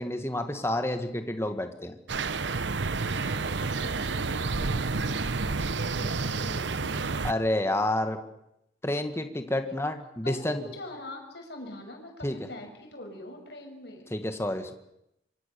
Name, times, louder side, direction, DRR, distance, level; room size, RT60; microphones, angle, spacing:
voice 1, 0.0-2.0 7.2-8.2 8.8-10.7 12.2-12.4 14.1-14.7, left 1 dB, 15° left, 7 dB, 1.8 m, -29 dB
sound 1, 2.1-7.3, right 4 dB, 75° right, 0.9 m, -29 dB
voice 2, 2.9-5.2 5.9-7.1 9.6-9.8 10.2-14.1, left 1 dB, 65° left, 3 dB, 6.3 m, -43 dB
26.0 x 24.5 x 7.0 m, 0.84 s
head